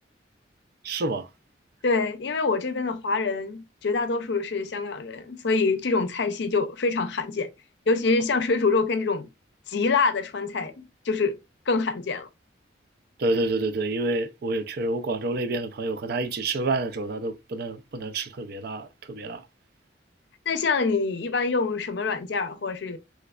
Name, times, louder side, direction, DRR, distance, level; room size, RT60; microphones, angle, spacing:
voice 1, 0.8-1.3 13.2-19.4, right 2 dB, 55° right, 0.4 m, -28 dB
voice 2, 1.8-7.5 7.9-9.3 9.7-11.4 11.7-12.3 20.5-23.0, left 4 dB, 65° left, 0.5 m, -25 dB
3.2 x 3.1 x 2.3 m
head